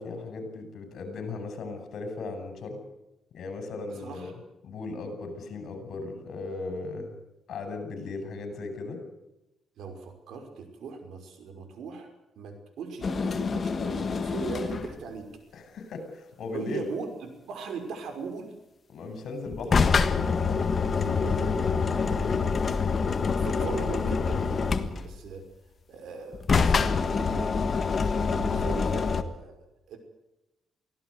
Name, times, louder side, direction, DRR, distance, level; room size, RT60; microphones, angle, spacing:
voice 1, 0.0-2.8 3.3-4.4 4.6-7.1 7.5-9.0 15.5-16.9 18.9-20.1, left 3 dB, 65° left, 7 dB, 6.7 m, -37 dB
voice 2, 4.0-4.3 9.8-15.3 16.5-18.6 21.0-25.4 25.9-26.8 27.2-27.5 28.2-30.0, right 4 dB, 75° right, 6 dB, 5.6 m, -39 dB
sound 1, 13.0-15.0 19.5-25.3 26.3-29.2, left 5 dB, 35° left, 1.6 m, -26 dB
24.0 x 17.0 x 8.1 m, 0.95 s
cardioid pair, 135°, 0 cm